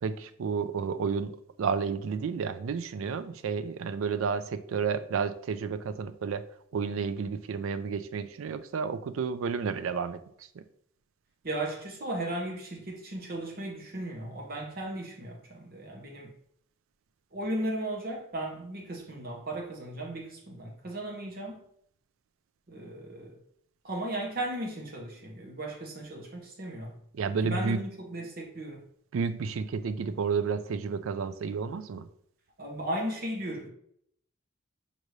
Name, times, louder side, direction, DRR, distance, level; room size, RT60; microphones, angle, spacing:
voice 1, 0.0-6.4 6.7-10.2 27.1-27.8 29.1-32.1, right 5 dB, 80° right, 12 dB, 0.4 m, -31 dB
voice 2, 11.4-16.3 17.3-21.6 22.7-23.4 23.8-27.0 27.4-28.8 32.6-33.7, right 1 dB, 45° right, 0 dB, 0.9 m, -36 dB
6.5 x 2.6 x 3.1 m, 0.68 s
head